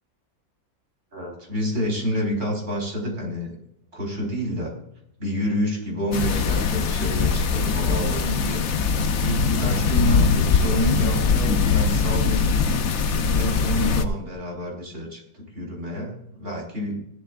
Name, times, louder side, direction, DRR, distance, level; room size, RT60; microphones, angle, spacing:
voice 1, 1.1-3.6 3.9-4.7 5.2-8.7 9.2-12.5 13.3-17.0, equal, 35° right, -1 dB, 5.1 m, -28 dB
sound 1, 6.1-14.1, left 5 dB, 55° left, 0.8 m, -22 dB
17.5 x 13.5 x 2.5 m, 0.76 s
omnidirectional pair, 2.1 m